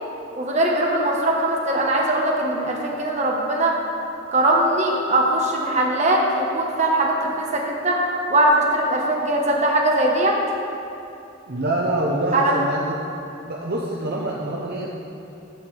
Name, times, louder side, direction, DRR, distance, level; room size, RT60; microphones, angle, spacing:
voice 1, 0.3-3.8 4.3-10.4 12.3-12.6, right 1 dB, 35° right, -1 dB, 1.2 m, -21 dB
voice 2, 11.5-13.0 13.4-14.9, right 1 dB, 55° right, -3 dB, 0.8 m, -25 dB
12.0 x 8.5 x 3.4 m, 2.7 s
head